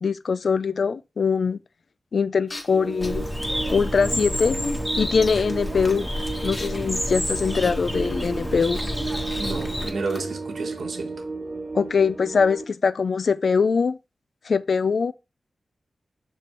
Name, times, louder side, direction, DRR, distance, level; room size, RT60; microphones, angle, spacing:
voice 1, 0.0-1.6 2.1-3.3 3.7-4.6 5.0-6.1 6.4-8.8 11.7-14.0 14.5-15.1, left 5 dB, 55° left, 0.4 m, -22 dB
sound 1, 2.5-10.2, left 2 dB, 30° left, 1.4 m, -39 dB
sound 2, 2.7-12.6, right 3 dB, 25° right, 0.5 m, -34 dB
Bird, 3.0-9.9, left 1 dB, 5° left, 1.4 m, -29 dB
voice 2, 9.4-11.2, right 4 dB, 70° right, 1.3 m, -31 dB
7.6 x 4.2 x 3.1 m
wide cardioid pair, 175°, 0 cm